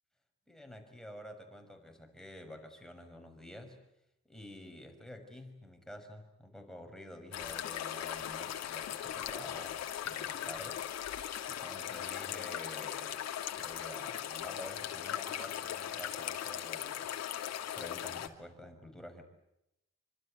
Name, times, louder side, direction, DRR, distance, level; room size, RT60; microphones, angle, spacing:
voice 1, 0.5-3.8 4.3-11.2 11.5-13.2 13.6-17.1 17.7-19.2, left 1 dB, ahead, 4 dB, 5.8 m, -49 dB
sound 1, 7.3-18.3, left 10 dB, 60° left, 2.8 m, -39 dB
27.0 x 25.5 x 8.3 m, 0.84 s
cardioid pair, 150°, 29 cm